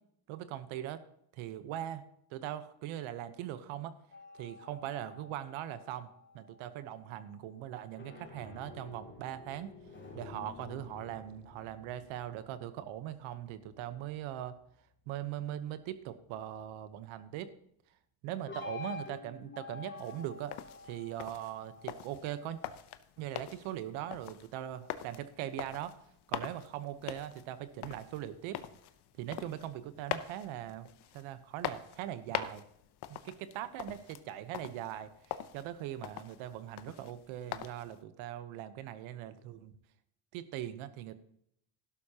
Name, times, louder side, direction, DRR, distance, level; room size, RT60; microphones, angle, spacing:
voice 1, 0.3-1.0 1.3-2.0 2.3-4.0 4.3-6.1 6.3-9.8 10.1-14.5 15.1-17.5 18.2-20.6 20.8-22.6 23.2-25.9 26.3-28.6 29.2-30.9 31.1-32.6 33.1-39.8 40.3-41.1, right 12 dB, 80° right, 12 dB, 1.1 m, -41 dB
sound 1, 4.1-6.7 7.8-14.6 18.5-22.7, left 4 dB, 25° left, 2.8 m, -50 dB
sound 2, 20.0-38.0, left 11 dB, 55° left, 0.9 m, -44 dB
12.0 x 11.5 x 2.9 m, 0.73 s
cardioid pair, 100°, 48 cm